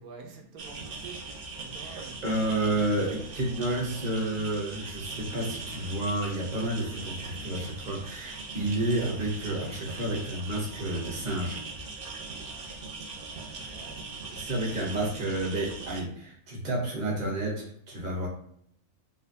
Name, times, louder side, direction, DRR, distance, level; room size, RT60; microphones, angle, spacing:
voice 1, 0.0-3.1 3.4-3.5 13.4-14.5, right 4 dB, 75° right, 1.1 m, -48 dB
sound 1, 0.6-16.0, right 3 dB, 60° right, 0.6 m, -40 dB
voice 2, 1.8-11.6 13.4-13.8 14.3-18.3, right 1 dB, 35° right, 1.0 m, -31 dB
3.6 x 2.1 x 2.6 m
omnidirectional pair, 1.6 m